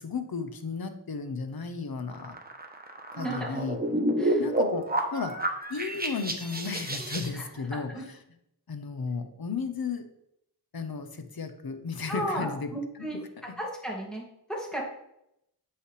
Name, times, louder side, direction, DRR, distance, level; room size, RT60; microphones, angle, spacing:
voice 1, 0.0-2.4 3.1-3.8 4.4-5.4 5.7-8.0 8.7-10.1 10.7-12.7 13.0-13.1 13.4-13.5, left 5 dB, 60° left, 8 dB, 0.8 m, -34 dB
sound 1, 2.1-7.3, right 1 dB, 20° right, 0.9 m, -30 dB
voice 2, 3.1-3.6 4.2-4.4 7.3-7.4 7.7-8.0 12.1-14.2 14.5-14.8, right 1 dB, ahead, -3 dB, 2.2 m, -34 dB
7.6 x 5.7 x 3.3 m, 0.79 s
wide cardioid pair, 50°, 41 cm